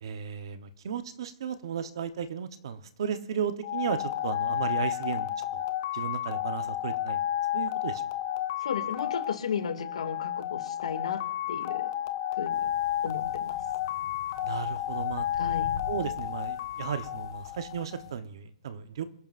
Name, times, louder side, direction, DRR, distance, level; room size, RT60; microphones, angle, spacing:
voice 1, 0.0-5.6 5.9-7.2 7.5-8.0 14.4-15.3 15.9-19.0, right 7 dB, 40° right, 10 dB, 1.0 m, -35 dB
sound 1, 3.6-18.1, left 12 dB, 25° left, 0.6 m, -32 dB
voice 2, 8.6-11.2 11.5-11.9 12.4-12.7 13.0-13.6 15.4-15.8, left 6 dB, 70° left, 6 dB, 2.2 m, -34 dB
sound 2, 12.5-18.2, left 7 dB, 50° left, 2.9 m, -46 dB
26.5 x 11.0 x 2.5 m, 0.81 s
hypercardioid pair, 180°, 4 cm